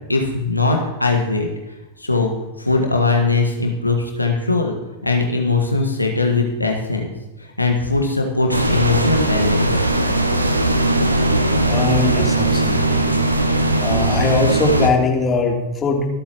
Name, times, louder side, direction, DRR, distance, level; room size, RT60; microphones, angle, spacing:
voice 1, 0.1-1.5 2.0-2.3 2.6-4.7 5.0-7.1 7.6-9.9, left 3 dB, 85° left, 2 dB, 1.7 m, -20 dB
sound 1, 8.5-14.9, right 2 dB, 85° right, 1.0 m, -18 dB
voice 2, 11.7-13.2 13.8-16.1, left 4 dB, 20° left, 0 dB, 3.1 m, -21 dB
25.0 x 8.9 x 3.0 m, 1.1 s
figure-of-eight pair, 90°, 0 cm